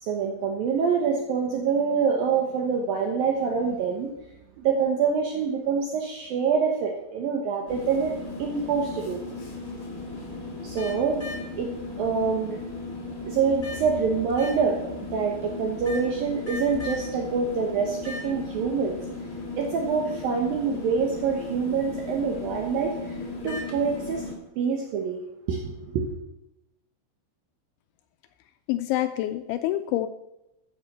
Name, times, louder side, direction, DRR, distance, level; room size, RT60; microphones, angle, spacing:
voice 1, 0.0-4.1 4.6-8.1 8.4-9.2 10.6-11.2 11.6-11.7 12.0-12.6 13.3-19.0 19.5-24.2 24.6-25.2 25.5-26.1, right 5 dB, 75° right, 1 dB, 2.2 m, -26 dB
sound 1, 7.7-24.3, left 3 dB, 40° left, 1.2 m, -36 dB
voice 2, 28.7-30.1, left 14 dB, 85° left, 9 dB, 2.7 m, -26 dB
13.5 x 7.1 x 6.6 m, 0.88 s
omnidirectional pair, 5.8 m